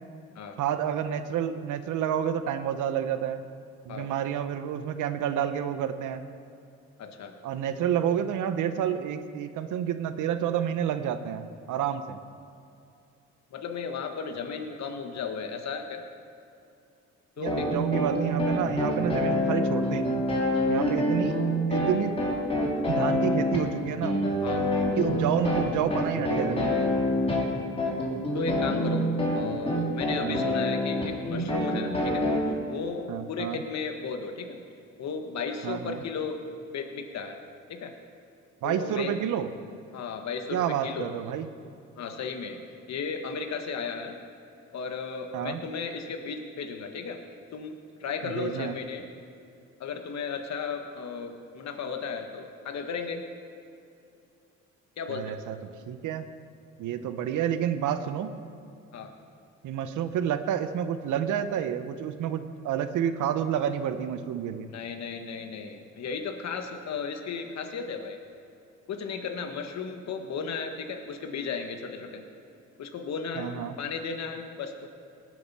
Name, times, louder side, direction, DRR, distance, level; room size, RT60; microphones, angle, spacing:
voice 1, 0.6-3.5 3.8-6.2 7.4-12.2 17.4-20.2 20.7-21.3 21.7-22.1 22.9-24.2 25.0-26.9 30.2-30.4 33.1-33.6 35.6-36.0 38.6-39.5 40.5-41.5 45.3-45.6 48.2-48.8 55.1-55.6 55.9-56.3 56.8-58.3 59.6-64.7 73.4-73.8, right 9 dB, 80° right, 10 dB, 0.9 m, -29 dB
voice 2, 7.0-7.3 13.5-16.0 17.4-17.7 24.4-24.7 28.3-34.6 35.0-36.4 36.7-37.4 37.7-37.9 38.6-39.1 39.9-41.1 42.0-42.6 42.9-44.1 44.7-47.2 47.5-49.0 49.8-53.2 55.0-55.4 58.9-59.1 64.7-68.2 68.9-72.2 72.8-73.5 73.8-75.0, left 5 dB, 65° left, 5 dB, 1.3 m, -35 dB
sound 1, 17.5-32.4, left 1 dB, 20° left, 3.1 m, -26 dB
18.5 x 7.8 x 5.5 m, 2.6 s
cardioid pair, 90°, 30 cm